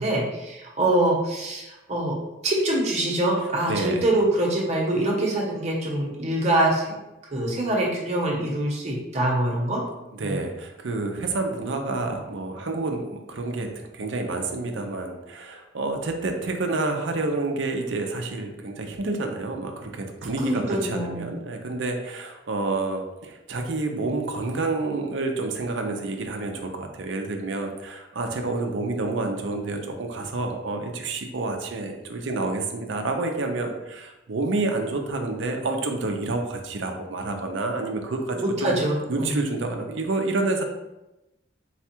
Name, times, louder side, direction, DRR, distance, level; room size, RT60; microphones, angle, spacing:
voice 1, 0.0-2.1 2.4-7.0 7.3-9.8 10.2-10.4 20.4-21.3 38.3-39.3, right 1 dB, 35° right, -3 dB, 1.0 m, -24 dB
voice 2, 3.7-4.1 10.1-38.8 39.1-40.6, right 3 dB, 65° right, 4 dB, 0.6 m, -29 dB
4.1 x 2.3 x 4.4 m, 0.98 s
head